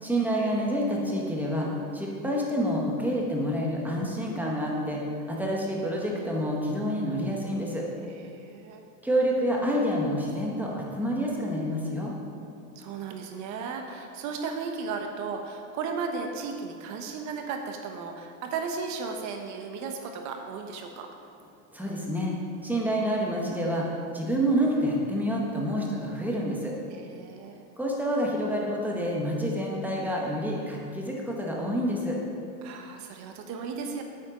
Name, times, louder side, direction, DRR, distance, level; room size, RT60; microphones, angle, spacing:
voice 1, 0.0-7.8 9.0-12.1 21.7-22.3 22.6-23.9 24.1-26.7 27.8-32.2, equal, 5° right, -3 dB, 1.6 m, -28 dB
voice 2, 8.0-8.8 12.7-21.1 26.9-27.6 32.6-34.0, right 5 dB, 40° right, 4 dB, 1.1 m, -35 dB
9.0 x 8.4 x 5.1 m, 2.5 s
supercardioid pair, 130°, 45 cm